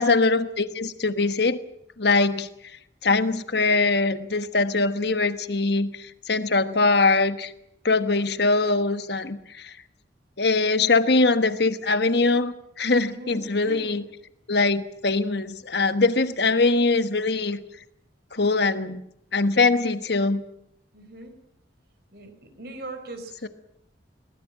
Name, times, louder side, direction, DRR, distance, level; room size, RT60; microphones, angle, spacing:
voice 1, 0.0-1.6 2.0-2.5 3.0-7.5 7.8-9.7 10.4-14.0 14.5-17.6 18.3-19.0 19.3-20.4 23.4-23.5, left 3 dB, 60° left, 11 dB, 1.3 m, -22 dB
voice 2, 13.0-14.0 20.9-21.3 22.1-23.5, right 2 dB, 55° right, 7 dB, 4.5 m, -40 dB
21.5 x 19.5 x 7.6 m, 0.77 s
head